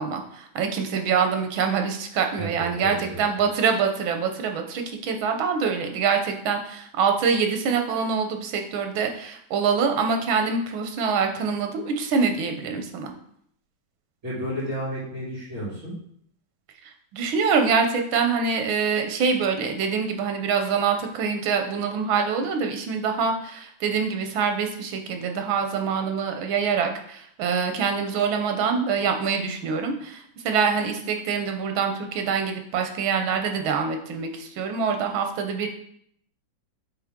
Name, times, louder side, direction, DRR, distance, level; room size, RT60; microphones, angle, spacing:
voice 1, 0.0-13.1 17.1-35.7, right 5 dB, 90° right, 5 dB, 1.6 m, -25 dB
voice 2, 2.4-3.2 14.2-15.9, equal, 35° right, -10 dB, 3.2 m, -32 dB
8.2 x 3.5 x 3.7 m, 0.68 s
omnidirectional pair, 2.1 m